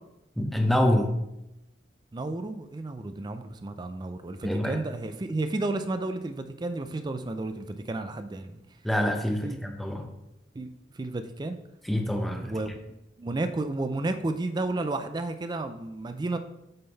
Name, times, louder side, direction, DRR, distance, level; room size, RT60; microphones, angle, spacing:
voice 1, 0.4-1.1 4.4-4.8 8.8-10.1 11.8-12.5, left 1 dB, ahead, 2 dB, 0.7 m, -26 dB
voice 2, 2.1-8.6 9.4-9.6 10.5-10.7 10.9-11.6 12.4-12.7 13.2-16.4, right 2 dB, 25° right, 8 dB, 0.4 m, -32 dB
7.7 x 3.8 x 4.0 m, 0.87 s
head